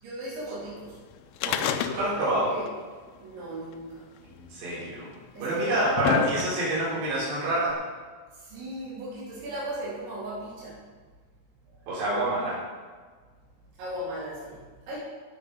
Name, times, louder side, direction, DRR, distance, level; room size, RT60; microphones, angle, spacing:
voice 1, 0.0-1.0 1.9-2.7 3.2-4.1 5.3-6.2 8.3-10.8 11.7-11.8 13.8-15.0, right 1 dB, 85° right, -7 dB, 6.3 m, -36 dB
sound 1, 1.4-2.4 2.7-2.8 3.7-3.8 4.7-4.8 5.5-6.8 7.7-7.8, left 9 dB, 80° left, 2.3 m, -28 dB
voice 2, 1.5-2.5 4.3-5.1 5.4-7.8 11.9-12.6, right 1 dB, 70° right, -7 dB, 6.0 m, -27 dB
16.5 x 8.0 x 5.4 m, 1.5 s
omnidirectional pair, 5.1 m